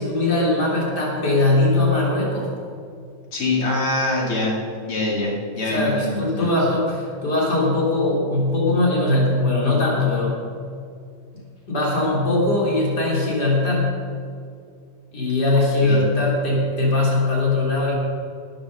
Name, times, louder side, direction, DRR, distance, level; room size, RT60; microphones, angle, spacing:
voice 1, 0.0-2.5 5.7-10.4 11.7-13.9 15.1-17.9, left 2 dB, 50° left, -4 dB, 4.0 m, -20 dB
voice 2, 3.3-6.6 15.8-16.0, left 2 dB, 80° left, -4 dB, 3.8 m, -24 dB
19.0 x 7.2 x 6.7 m, 2.4 s
omnidirectional pair, 2.2 m